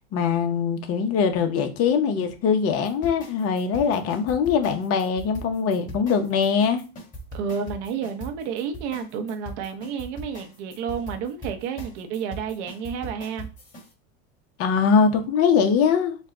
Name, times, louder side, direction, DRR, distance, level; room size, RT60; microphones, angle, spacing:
voice 1, 0.1-6.8 14.6-16.2, left 6 dB, 40° left, 0.8 m, -22 dB
sound 1, 2.8-13.9, right 1 dB, 20° left, 1.9 m, -40 dB
voice 2, 7.3-13.5, right 6 dB, 65° right, 0.9 m, -31 dB
4.3 x 2.3 x 3.7 m
supercardioid pair, 120°, 37 cm